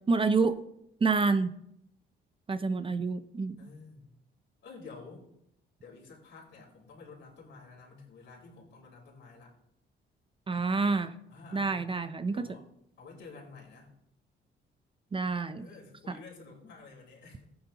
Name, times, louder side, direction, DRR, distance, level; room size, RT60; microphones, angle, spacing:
voice 1, 0.1-0.6 1.0-1.5 2.5-3.6 10.5-11.1 11.5-12.5 15.1-15.7, right 4 dB, 25° right, 11 dB, 0.5 m, -28 dB
voice 2, 3.6-4.1 4.6-5.2 5.8-9.5 11.3-11.8 12.3-12.7 13.0-14.0 15.6-17.5, left 4 dB, 65° left, -2 dB, 4.1 m, -50 dB
15.0 x 9.5 x 2.9 m, 0.77 s
cardioid pair, 90°, 20 cm